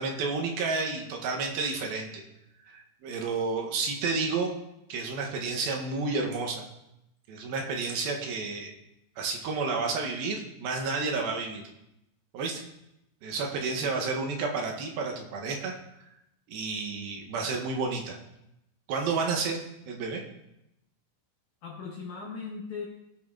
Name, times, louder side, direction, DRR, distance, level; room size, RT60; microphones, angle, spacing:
voice 1, 0.0-2.2 2.6-4.5 4.9-6.6 7.3-8.7 9.2-11.6 12.3-12.6 13.2-15.7 16.5-18.2 18.9-19.6 19.9-20.2, right 4 dB, 75° right, 1 dB, 2.5 m, -31 dB
voice 2, 13.8-14.3 21.6-22.9, left 5 dB, 75° left, -2 dB, 1.7 m, -39 dB
16.5 x 5.6 x 2.4 m, 0.85 s
omnidirectional pair, 4.6 m